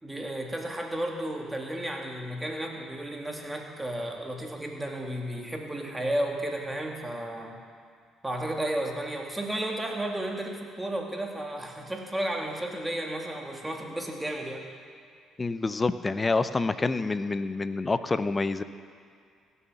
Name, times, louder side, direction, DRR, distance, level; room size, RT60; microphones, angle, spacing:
voice 1, 0.0-7.6 8.2-14.6, right 1 dB, 15° right, 1 dB, 2.4 m, -33 dB
voice 2, 15.4-18.6, left 3 dB, 30° left, 13 dB, 0.6 m, -27 dB
16.5 x 7.1 x 7.2 m, 2.3 s
hypercardioid pair, 55°, 0 cm